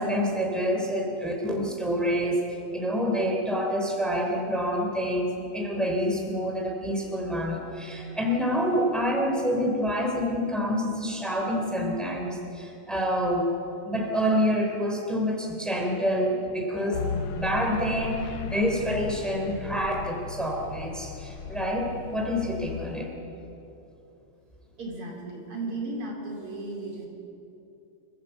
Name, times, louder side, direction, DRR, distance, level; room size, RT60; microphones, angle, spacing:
voice 1, 0.0-2.4 2.7-13.5 13.8-23.1, equal, ahead, 1 dB, 3.4 m, -27 dB
sound 1, 16.9-22.9, left 4 dB, 80° left, 1.9 m, -36 dB
voice 2, 24.8-27.1, right 2 dB, 85° right, -2 dB, 5.3 m, -35 dB
26.0 x 16.0 x 8.2 m, 2.9 s
omnidirectional pair, 2.4 m